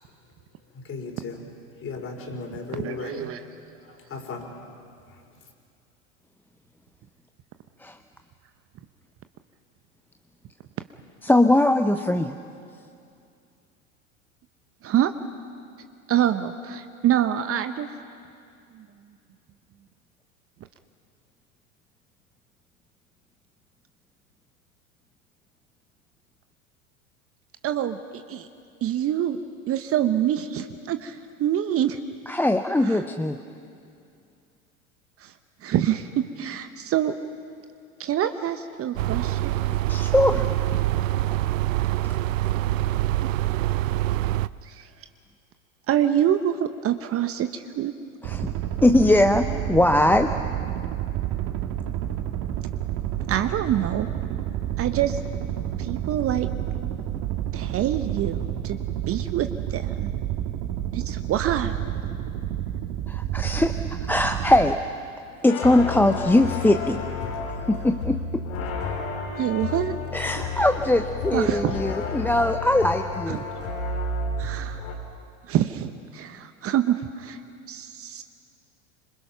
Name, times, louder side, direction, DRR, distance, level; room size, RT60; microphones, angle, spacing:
voice 1, 0.7-1.4 1.8-3.3 3.9-4.6, left 4 dB, 30° left, 3 dB, 4.9 m, -36 dB
voice 2, 2.7-3.4 14.8-15.1 16.1-17.9 18.7-18.9 27.6-28.5 28.8-29.4 29.7-32.0 32.8-33.0 35.2-35.3 35.6-37.2 38.0-39.5 43.2-43.4 44.6-44.9 45.9-47.9 53.3-54.1 54.8-55.2 55.8-56.5 57.5-58.8 59.1-60.1 60.9-61.8 69.3-69.9 71.3-71.8 73.3-73.4 74.4-75.0 75.5-77.4 77.7-78.2, right 11 dB, 35° right, 9 dB, 1.0 m, -26 dB
voice 3, 11.2-12.4 32.3-33.4 39.9-40.5 40.7-40.8 48.2-48.5 48.8-50.3 63.1-64.8 65.4-67.0 67.7-68.4 70.1-73.4, left 1 dB, 5° left, 6 dB, 0.7 m, -21 dB
sound 1, 39.0-44.5, right 14 dB, 70° right, 0.6 m, -25 dB
sound 2, 48.2-64.7, right 11 dB, 50° right, 1.9 m, -30 dB
sound 3, 65.5-74.9, left 3 dB, 60° left, 4.6 m, -31 dB
26.5 x 26.0 x 5.9 m, 2.4 s
hypercardioid pair, 85°, 41 cm